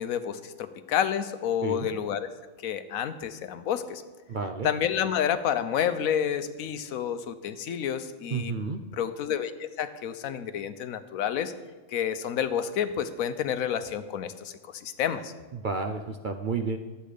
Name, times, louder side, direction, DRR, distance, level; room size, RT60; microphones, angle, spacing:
voice 1, 0.0-2.3 2.6-4.0 4.6-8.5 8.9-11.5 11.9-15.3, left 9 dB, 85° left, 11 dB, 1.1 m, -29 dB
voice 2, 4.3-4.7 8.3-8.8 15.5-16.8, right 4 dB, 55° right, 6 dB, 0.5 m, -31 dB
12.0 x 8.1 x 5.0 m, 1.3 s
omnidirectional pair, 1.4 m